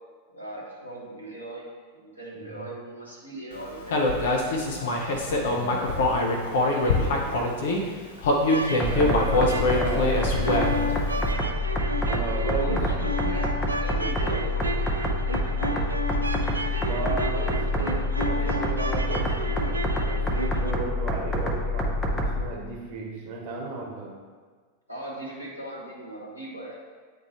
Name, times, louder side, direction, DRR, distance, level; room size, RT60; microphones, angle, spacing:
voice 1, 0.3-4.2 4.8-5.1 5.4-6.0 6.4-7.4 9.5-11.4 12.4-13.5 13.8-14.7 15.2-15.9 17.5-18.5 24.9-26.7, right 1 dB, 90° left, -5 dB, 1.4 m, -39 dB
voice 2, 2.3-2.7 5.2-5.8 8.9-10.1 12.1-12.8 14.2-14.4 16.8-24.2, right 3 dB, 45° right, -1 dB, 1.2 m, -34 dB
Human voice, 3.9-7.8 8.2-10.9, left 2 dB, 55° left, 0.8 m, -24 dB
sound 1, 8.4-20.7, right 1 dB, 80° right, 0.4 m, -33 dB
sound 2, 8.8-22.4, left 1 dB, 15° left, 0.8 m, -27 dB
9.0 x 3.4 x 3.0 m, 1.5 s
figure-of-eight pair, 90°, 0 cm